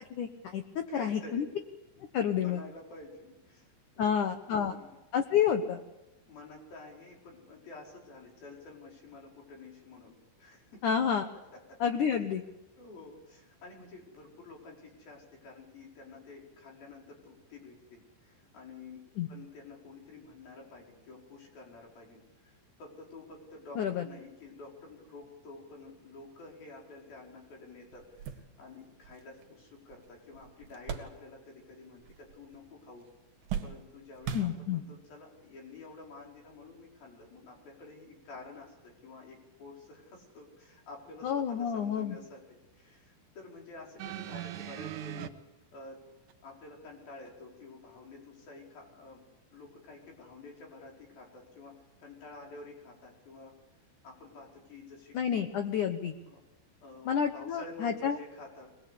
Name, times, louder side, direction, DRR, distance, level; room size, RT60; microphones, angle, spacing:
voice 1, 0.1-0.6 0.9-1.4 2.1-2.6 4.0-4.8 5.1-5.8 10.8-11.2 11.8-12.4 19.2-19.3 23.8-24.1 34.3-34.8 41.2-42.2 55.1-56.2 57.1-58.2, left 8 dB, 85° left, 7 dB, 1.7 m, -29 dB
voice 2, 0.9-1.5 2.4-4.2 4.5-5.0 5.5-5.6 6.3-10.9 11.5-11.8 12.8-19.0 19.3-33.1 33.6-45.3 45.7-46.0 46.4-53.5 54.0-55.5 56.3-56.4 56.8-58.7, left 3 dB, 50° left, -1 dB, 6.6 m, -50 dB
sound 1, 27.4-27.5 27.9-31.7 32.0-32.7 33.0-35.0 35.8-35.9 37.2-37.4, right 8 dB, 55° right, 3.3 m, -41 dB
sound 2, 44.0-45.3 46.3-46.4, right 12 dB, 85° right, 1.7 m, -39 dB
24.0 x 21.0 x 8.5 m, 1.0 s
omnidirectional pair, 5.5 m